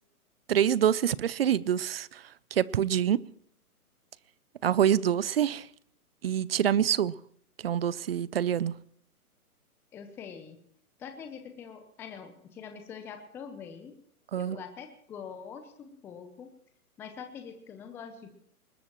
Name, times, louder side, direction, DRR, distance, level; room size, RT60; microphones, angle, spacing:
voice 1, 0.5-2.2 2.5-3.2 4.6-5.7 6.2-7.1 7.6-8.7 14.3-14.6, right 10 dB, 45° right, 0.6 m, -26 dB
voice 2, 9.9-10.6 11.0-13.9 14.4-16.5 17.0-18.4, left 7 dB, 5° left, 0.6 m, -44 dB
21.0 x 20.5 x 3.0 m
hypercardioid pair, 140°, 45 cm